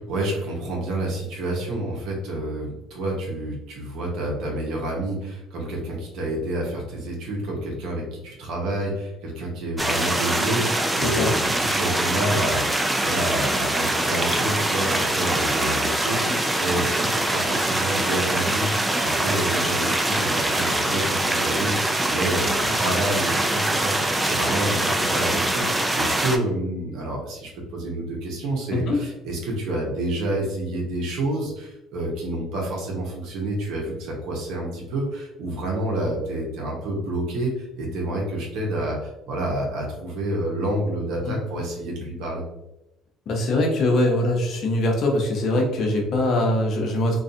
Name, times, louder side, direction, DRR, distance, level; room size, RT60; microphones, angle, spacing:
voice 1, 0.1-42.4, right 1 dB, 70° right, -2 dB, 0.8 m, -29 dB
sound 1, 9.8-26.4, right 1 dB, 10° right, 0.3 m, -23 dB
voice 2, 43.3-47.2, left 1 dB, 55° left, 1 dB, 0.6 m, -22 dB
2.5 x 2.3 x 2.6 m, 0.92 s
cardioid pair, 100°, 0 cm